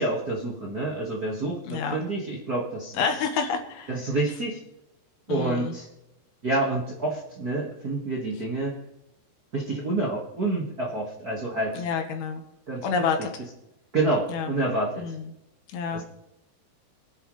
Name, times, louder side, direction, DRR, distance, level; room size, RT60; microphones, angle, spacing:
voice 1, 0.0-3.0 3.9-4.6 5.3-5.9 6.4-8.7 9.5-11.8 12.7-12.8 13.9-15.0 15.9-16.0, right 2 dB, 40° right, -3 dB, 1.4 m, -28 dB
voice 2, 1.6-2.0 2.9-4.0 5.3-5.7 11.7-12.4 12.8-13.4 14.3-14.5 15.0-15.3 15.7-16.0, left 5 dB, 75° left, 4 dB, 3.3 m, -28 dB
23.0 x 10.0 x 3.3 m, 0.86 s
omnidirectional pair, 4.7 m